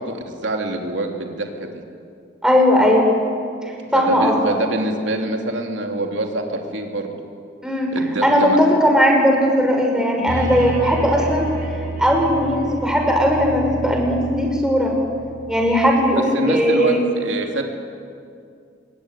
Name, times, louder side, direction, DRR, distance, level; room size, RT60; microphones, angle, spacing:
voice 1, 0.0-1.8 3.9-7.2 7.9-8.6 10.2-10.5 16.1-17.8, right 2 dB, 90° right, 2 dB, 3.0 m, -25 dB
voice 2, 2.4-3.1 3.9-4.3 7.6-7.9 8.2-11.5 12.0-15.0 15.5-17.0, equal, 5° right, 0 dB, 5.7 m, -17 dB
sound 1, 10.3-15.9, right 2 dB, 50° right, 5.6 m, -30 dB
26.5 x 23.0 x 10.0 m, 2.4 s
head